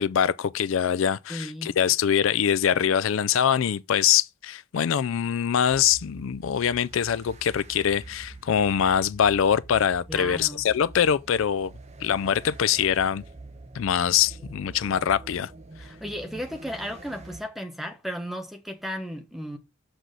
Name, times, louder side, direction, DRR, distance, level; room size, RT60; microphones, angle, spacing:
voice 1, 0.0-11.7 12.0-13.2 13.7-15.5, left 8 dB, 65° left, 0.4 m, -23 dB
voice 2, 1.3-1.7 10.1-10.6 15.8-19.6, equal, ahead, 1.2 m, -35 dB
sound 1, 5.7-17.4, right 2 dB, 30° right, 0.9 m, -45 dB
6.2 x 6.0 x 6.7 m
head